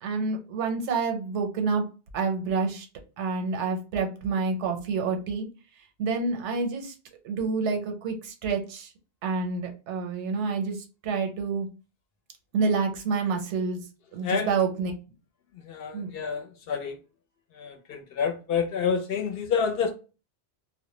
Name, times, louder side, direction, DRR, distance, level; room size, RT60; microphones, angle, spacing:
voice 1, 0.0-1.8 2.1-2.9 3.2-5.5 6.0-6.9 7.2-8.9 9.2-11.7 12.5-13.9 14.1-14.9 15.9-16.2, right 4 dB, 85° right, 0.9 m, -28 dB
voice 2, 14.2-14.6 15.5-17.0 17.5-19.9, left 6 dB, 65° left, 0.7 m, -28 dB
2.1 x 2.1 x 2.9 m
omnidirectional pair, 1.2 m